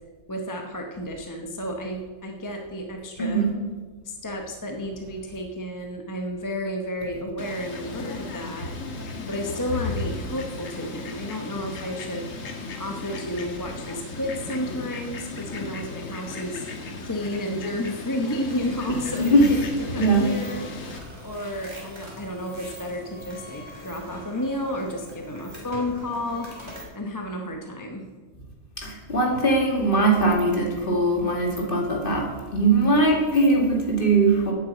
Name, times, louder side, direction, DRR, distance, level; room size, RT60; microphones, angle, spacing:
voice 1, 0.3-3.4 4.0-8.7 9.3-12.3 12.8-16.7 17.0-19.6 19.9-20.7 21.2-26.7 26.9-28.1, left 1 dB, 15° left, 2 dB, 0.8 m, -32 dB
voice 2, 3.2-3.5 18.9-19.5 20.0-20.3 28.8-34.5, right 2 dB, 40° left, -1 dB, 2.2 m, -21 dB
Fowl, 7.4-21.0, left 3 dB, 70° left, 1.7 m, -35 dB
sound 1, 18.5-26.8, equal, 20° right, 3.0 m, -42 dB
9.2 x 7.8 x 8.1 m, 1.4 s
omnidirectional pair, 1.4 m